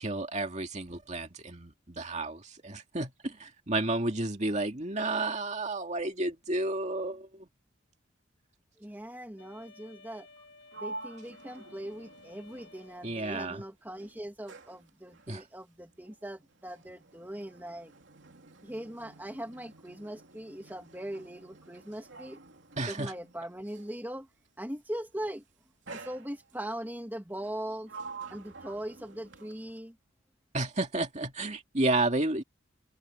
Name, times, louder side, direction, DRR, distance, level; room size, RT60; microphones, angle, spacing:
voice 1, 0.0-7.5 13.0-13.6 15.3-15.4 22.8-23.1 30.5-32.4, right 2 dB, 35° right, 2.4 m, -31 dB
voice 2, 8.8-10.3 10.8-17.9 18.6-22.4 22.9-24.3 24.6-25.4 25.9-27.9 28.3-30.0, right 1 dB, 10° right, 2.2 m, -40 dB
Wind instrument woodwind instrument, 9.4-13.6, left 3 dB, 60° left, 7.5 m, -56 dB
Sliding door, 10.3-13.6 13.9-24.0 24.9-25.2 25.9-26.8 27.4-29.9, right 3 dB, 65° right, 3.1 m, -49 dB
open air
head